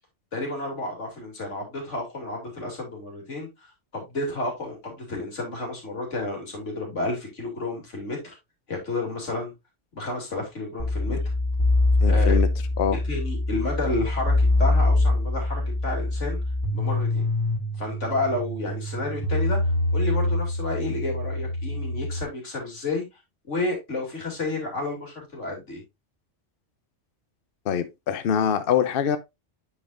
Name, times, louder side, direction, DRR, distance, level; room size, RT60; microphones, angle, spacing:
voice 1, 0.3-3.5 3.9-8.2 8.7-9.5 9.9-11.2 12.0-12.4 12.9-16.4 16.7-17.2 17.8-23.1 23.5-25.8, left 2 dB, 85° left, 3.0 m, -31 dB
sound 1, 10.8-22.2, left 2 dB, 20° left, 1.0 m, -24 dB
voice 2, 12.0-12.5 12.8-13.0 27.7-29.2, left 8 dB, 60° left, 0.7 m, -24 dB
8.6 x 5.3 x 2.5 m
omnidirectional pair, 1.2 m